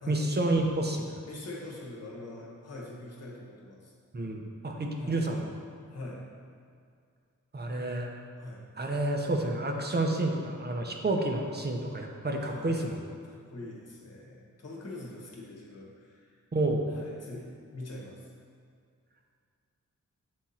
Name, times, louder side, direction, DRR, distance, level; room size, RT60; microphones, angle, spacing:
voice 1, 0.1-1.2 4.1-5.5 7.5-8.1 8.8-13.0 16.5-16.9, right 2 dB, 30° right, 1 dB, 0.7 m, -29 dB
voice 2, 1.3-3.9 4.9-5.2 5.9-6.3 7.8-8.1 8.4-8.6 12.4-12.7 13.2-16.4 16.9-18.3, left 2 dB, 55° left, -4 dB, 1.4 m, -43 dB
7.6 x 3.7 x 4.2 m, 2.3 s
wide cardioid pair, 120°, 31 cm